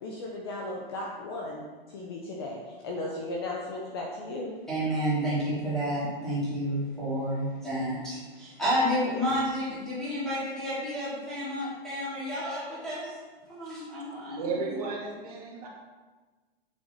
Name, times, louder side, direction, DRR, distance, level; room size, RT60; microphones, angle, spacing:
voice 1, 0.0-4.6, left 2 dB, 25° left, -1 dB, 0.8 m, -36 dB
voice 2, 4.7-13.1 13.5-14.5, equal, ahead, -11 dB, 2.8 m, -30 dB
voice 3, 14.4-15.7, right 4 dB, 40° right, -2 dB, 2.1 m, -33 dB
8.2 x 7.0 x 5.7 m, 1.3 s
hypercardioid pair, 180°, 30 cm